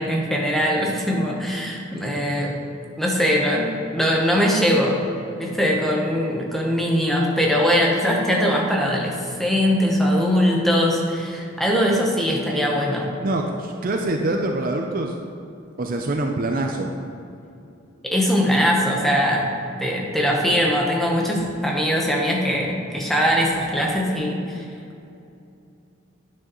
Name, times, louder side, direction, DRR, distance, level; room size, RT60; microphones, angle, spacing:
voice 1, 0.0-2.6 3.0-5.0 5.4-13.1 18.0-19.5 19.8-24.6, equal, ahead, -2 dB, 0.8 m, -21 dB
voice 2, 13.2-15.1 15.8-16.9, right 2 dB, 40° right, 2 dB, 0.4 m, -25 dB
9.3 x 6.3 x 3.0 m, 2.7 s
head